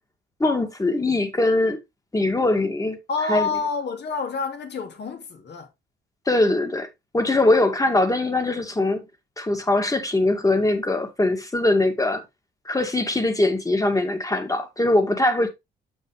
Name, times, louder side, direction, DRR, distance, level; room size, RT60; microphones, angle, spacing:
voice 1, 0.4-1.8 2.1-3.0 3.3-3.5 6.3-6.9 7.1-9.1 9.4-12.2 12.7-15.5, left 2 dB, 15° left, 2.1 m, -21 dB
voice 2, 3.1-5.7, left 4 dB, 60° left, 2.6 m, -28 dB
7.7 x 6.4 x 3.3 m
cardioid pair, 90°, 20 cm